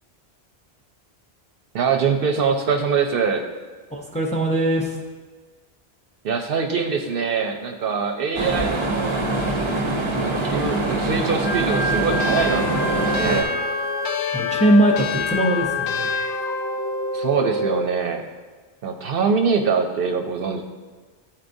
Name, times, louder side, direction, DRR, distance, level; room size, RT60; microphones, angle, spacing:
voice 1, 1.7-3.5 6.2-9.2 10.2-13.5 17.1-18.2 18.8-20.6, right 5 dB, 65° right, 4 dB, 0.7 m, -23 dB
voice 2, 3.9-5.0 14.3-16.2, right 1 dB, 10° left, 0 dB, 0.5 m, -20 dB
sound 1, 8.3-13.4, right 2 dB, 35° right, 0.6 m, -24 dB
Wind instrument woodwind instrument, 11.2-16.6, left 1 dB, 60° left, 1.1 m, -29 dB
sound 2, 12.2-17.9, left 3 dB, 85° left, 0.8 m, -27 dB
11.0 x 4.3 x 2.6 m, 1.4 s
omnidirectional pair, 1.1 m